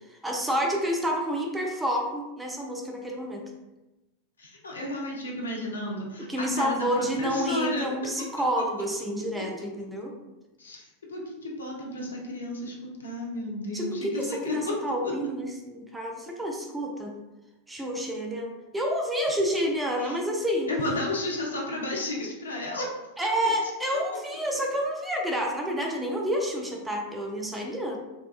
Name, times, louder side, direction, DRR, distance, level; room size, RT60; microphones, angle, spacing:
voice 1, 0.2-3.4 6.3-10.1 13.7-17.1 17.7-20.7 23.2-28.0, equal, 10° right, 0 dB, 0.4 m, -29 dB
voice 2, 4.4-8.0 10.6-14.7 15.0-15.1 20.0-20.2 20.7-22.9, left 1 dB, 70° left, -1 dB, 0.5 m, -32 dB
2.7 x 2.2 x 2.3 m, 1.0 s
figure-of-eight pair, 90°, 0 cm